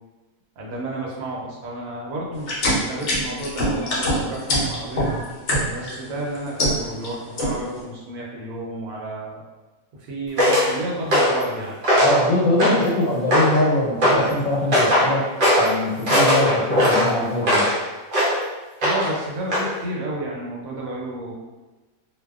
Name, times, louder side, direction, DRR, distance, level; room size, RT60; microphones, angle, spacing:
voice 1, 0.6-5.1 5.7-9.4 9.9-11.8 18.8-21.3, right 1 dB, 85° right, -3 dB, 1.1 m, -31 dB
sound 1, 2.4-6.0 6.4-7.1 7.4-7.8, equal, 60° left, 0.9 m, -23 dB
sound 2, 10.4-10.7 11.1-11.4 11.8-12.2 12.6-12.9 13.3-13.6 14.0-14.2 14.7-15.1 15.4-15.7 16.1-17.8 18.1-18.4 18.8-19.2 19.5-19.7, equal, 50° right, 0.7 m, -18 dB
voice 2, 11.9-15.2 15.6-17.6, left 2 dB, 80° left, -4 dB, 1.1 m, -22 dB
2.6 x 2.2 x 2.3 m, 1.2 s
omnidirectional pair, 1.4 m